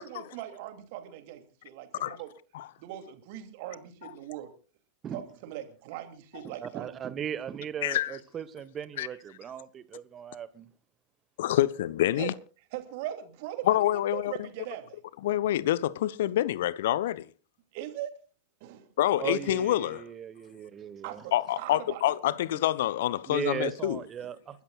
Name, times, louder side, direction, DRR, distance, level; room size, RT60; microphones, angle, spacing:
voice 1, 0.0-2.3 2.8-4.5 5.1-6.9 12.2-12.3 12.7-13.8 14.1-15.0 17.7-18.1 18.6-18.9 21.0-22.0 22.3-22.6, right 13 dB, 50° right, 2.8 m, -40 dB
voice 2, 6.4-10.7 19.2-21.2 23.3-24.6, right 8 dB, 25° right, 1.3 m, -37 dB
voice 3, 7.8-8.2 9.0-9.1 11.4-12.3 13.6-14.5 15.2-17.3 19.0-20.0 21.3-24.0, left 13 dB, 55° left, 0.8 m, -27 dB
29.5 x 13.5 x 2.4 m
figure-of-eight pair, 90°, 0 cm